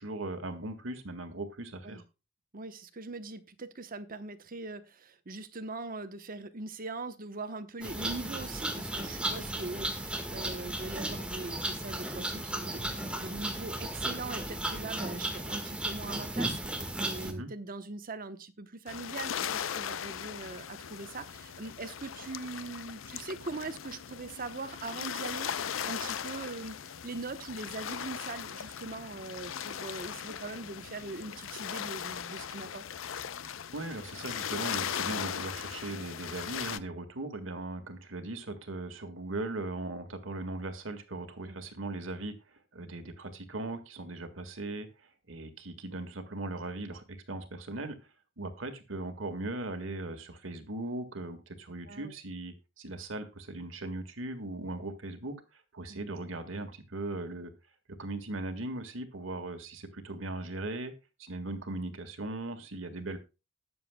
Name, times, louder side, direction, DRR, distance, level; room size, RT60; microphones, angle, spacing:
voice 1, 0.0-2.0 17.2-17.5 33.7-48.0 48.4-57.5 58.0-60.9 61.2-63.2, right 2 dB, 75° right, 1.8 m, -39 dB
voice 2, 2.5-25.5 25.8-32.8 41.4-41.6 51.9-52.1 55.9-56.0, right 3 dB, 45° right, 1.0 m, -41 dB
sound 1, 7.8-17.3, right 1 dB, 5° right, 1.6 m, -35 dB
sound 2, 18.9-36.8, left 8 dB, 80° left, 0.6 m, -38 dB
20.0 x 7.1 x 2.2 m
head